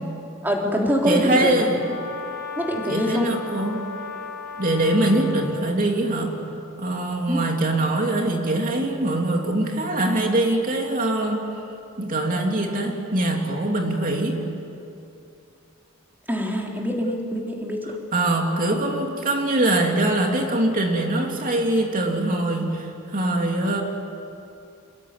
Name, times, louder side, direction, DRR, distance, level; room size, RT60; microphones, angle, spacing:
voice 1, 0.4-1.7 2.6-3.3 7.3-7.4 16.3-17.9 18.7-18.8, equal, 10° right, -1 dB, 3.6 m, -24 dB
voice 2, 1.0-1.8 2.9-3.8 4.6-6.3 6.8-11.4 12.0-14.4 18.1-23.8, right 1 dB, 40° right, 1 dB, 2.9 m, -23 dB
Brass instrument, 1.7-5.6, left 5 dB, 45° left, 4.6 m, -36 dB
27.0 x 21.5 x 9.6 m, 2.7 s
head